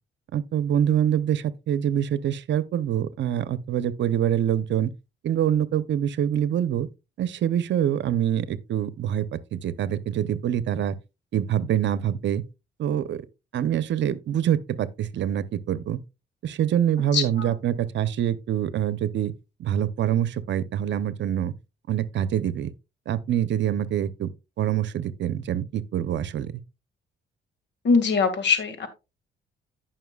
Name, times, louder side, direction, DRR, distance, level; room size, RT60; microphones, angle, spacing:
voice 1, 0.3-4.9 5.2-6.9 7.2-11.0 11.3-12.4 12.8-13.2 13.5-16.0 16.4-19.3 19.6-21.5 21.9-22.7 23.1-24.3 24.6-26.5, right 10 dB, 65° right, 0.8 m, -25 dB
voice 2, 17.1-17.5 27.8-28.9, left 5 dB, 65° left, 2.1 m, -22 dB
14.5 x 5.9 x 2.4 m
cardioid pair, 90°, 20 cm